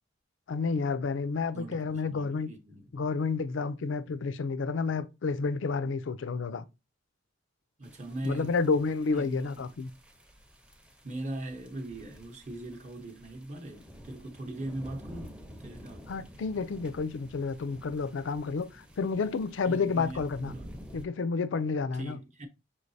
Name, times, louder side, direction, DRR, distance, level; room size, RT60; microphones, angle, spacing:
voice 1, 0.5-2.5 2.9-6.6 8.2-9.9 16.1-20.5 20.9-22.2, left 4 dB, 75° left, 0.4 m, -30 dB
voice 2, 1.5-2.9 7.8-8.6 9.1-9.6 11.0-16.1 19.1-19.3 19.6-20.7 21.9-22.5, right 1 dB, 40° right, 0.8 m, -40 dB
sound 1, 7.8-21.1, equal, 5° right, 0.6 m, -50 dB
5.5 x 3.2 x 2.6 m
head